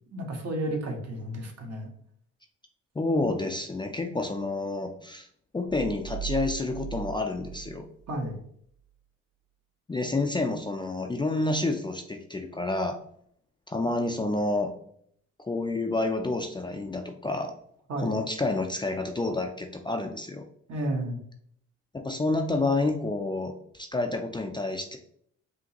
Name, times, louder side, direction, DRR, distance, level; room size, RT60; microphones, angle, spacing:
voice 1, 0.1-1.9 8.1-8.4 17.9-18.2 20.7-21.2, right 1 dB, 55° right, 1 dB, 1.3 m, -32 dB
voice 2, 3.0-5.3 5.5-7.9 9.9-13.0 13.7-14.7 15.4-17.5 18.0-20.4 22.0-25.0, left 2 dB, 15° left, 4 dB, 0.4 m, -29 dB
sound 1, 5.7-8.4, right 9 dB, 85° right, 1.5 m, -38 dB
5.1 x 2.8 x 2.9 m, 0.65 s
cardioid pair, 90°, 30 cm